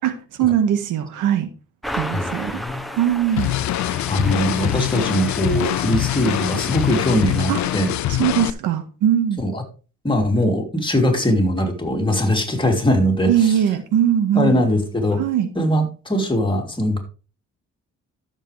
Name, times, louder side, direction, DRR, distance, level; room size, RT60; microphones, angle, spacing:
voice 1, 0.0-1.5 1.9-2.6 2.9-3.5 7.5-7.6 8.1-9.4 13.3-14.6 15.2-15.5, right 10 dB, 90° right, 9 dB, 1.6 m, -20 dB
sound 1, 1.8-8.0, equal, ahead, 1.1 m, -34 dB
voice 2, 2.1-2.8 4.1-7.9 9.4-9.6 10.0-13.5 14.3-15.2 15.5-17.0, equal, 15° left, 2 dB, 3.2 m, -21 dB
sound 2, 3.4-8.5, left 14 dB, 70° left, 0.6 m, -23 dB
13.0 x 7.3 x 3.3 m, 0.35 s
cardioid pair, 90°, 30 cm